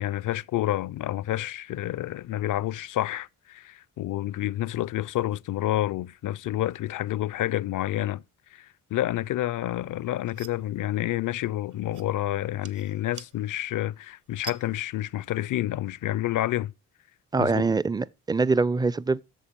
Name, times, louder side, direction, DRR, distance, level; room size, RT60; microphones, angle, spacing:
voice 1, 0.0-8.2 8.5-16.7 17.4-17.7, left 14 dB, 55° left, 0.4 m, -29 dB
sound 1, 9.7-15.3, right 5 dB, 50° right, 0.9 m, -48 dB
voice 2, 17.3-19.2, right 4 dB, 10° right, 0.4 m, -24 dB
7.3 x 6.7 x 5.2 m
supercardioid pair, 45°, 39 cm